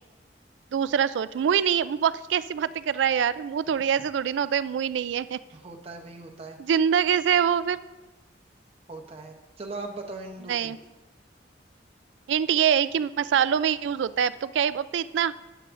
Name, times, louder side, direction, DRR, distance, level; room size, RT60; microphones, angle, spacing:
voice 1, 0.7-5.4 6.6-7.8 10.5-10.8 12.3-15.3, right 8 dB, 85° right, 16 dB, 0.3 m, -24 dB
voice 2, 5.5-6.6 8.9-10.8, right 3 dB, 35° right, 2 dB, 0.7 m, -39 dB
11.5 x 8.9 x 2.5 m, 1.1 s
head